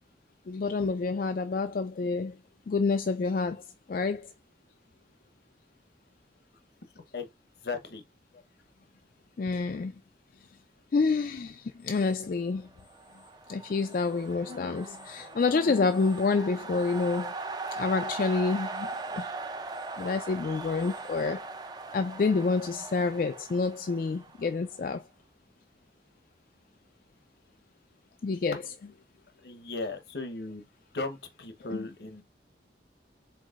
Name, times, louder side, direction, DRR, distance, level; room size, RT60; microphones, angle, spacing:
voice 1, 0.5-2.3 2.7-3.6 3.9-4.3 9.4-9.9 10.9-12.7 13.5-17.3 17.8-18.9 19.1-19.3 20.0-21.4 21.9-25.0 28.2-28.6 31.7-31.9, left 4 dB, 50° left, 0.3 m, -28 dB
voice 2, 7.6-8.0 29.4-30.7 30.9-32.2, left 3 dB, 70° left, 0.9 m, -36 dB
sound 1, 12.8-24.8, right 3 dB, 25° right, 0.4 m, -40 dB
4.6 x 4.1 x 2.4 m
head